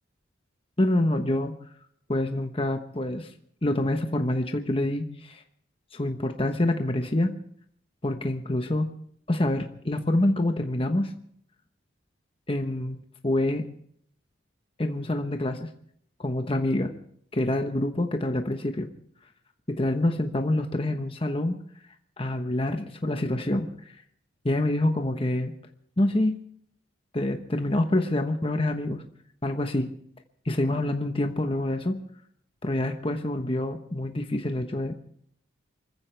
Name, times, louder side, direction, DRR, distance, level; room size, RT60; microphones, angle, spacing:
voice 1, 0.8-1.5 2.1-3.3 3.6-5.4 5.9-7.3 8.0-8.9 9.3-11.1 12.5-13.6 14.8-15.7 16.2-16.9 17.3-18.9 19.8-21.6 22.2-23.7 24.4-25.5 26.0-26.4 27.1-29.0 29.4-29.9 30.5-32.0 32.6-34.9, left 1 dB, 25° left, 5 dB, 1.1 m, -26 dB
25.5 x 15.0 x 3.4 m, 0.64 s
head